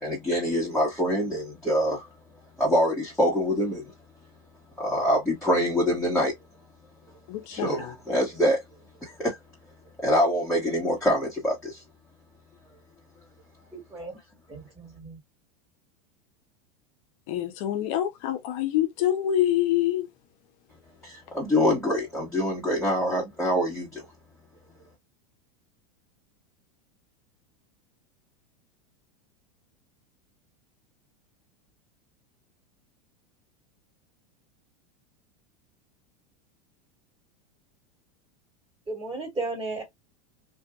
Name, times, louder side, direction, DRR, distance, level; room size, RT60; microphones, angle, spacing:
voice 1, 0.0-2.1 2.6-3.8 4.8-6.3 7.5-8.6 9.0-9.4 10.0-11.8 21.0-24.0, equal, 5° left, 1.3 m, -25 dB
voice 2, 7.3-7.9 17.3-20.1, left 12 dB, 55° left, 0.8 m, -26 dB
voice 3, 13.7-14.1 14.5-15.2 38.9-39.8, right 2 dB, 15° right, 1.9 m, -34 dB
2.7 x 2.5 x 2.3 m
supercardioid pair, 120°, 20 cm